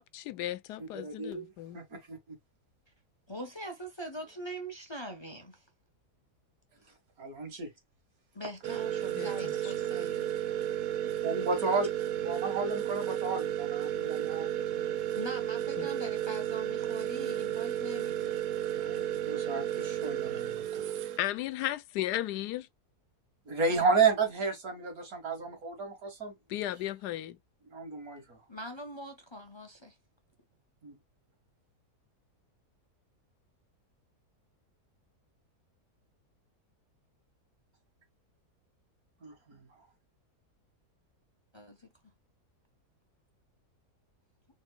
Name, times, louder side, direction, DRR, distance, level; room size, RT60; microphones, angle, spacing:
voice 1, 0.0-1.8 9.1-9.7 15.8-15.9 21.2-22.7 26.5-27.4, left 14 dB, 85° left, 1.2 m, -35 dB
voice 2, 0.8-2.2 7.2-7.7 11.0-11.9 12.2-14.5 14.7-14.9 18.8-20.6 23.5-26.3 27.7-28.4 30.8-30.9 39.2-39.6, right 4 dB, 65° right, 2.3 m, -32 dB
voice 3, 3.3-5.6 8.3-10.4 15.1-18.4 28.5-30.0 41.5-41.9, equal, 20° left, 0.9 m, -43 dB
sound 1, 8.6-21.2, right 11 dB, 80° right, 1.2 m, -33 dB
4.4 x 4.2 x 2.3 m
omnidirectional pair, 1.7 m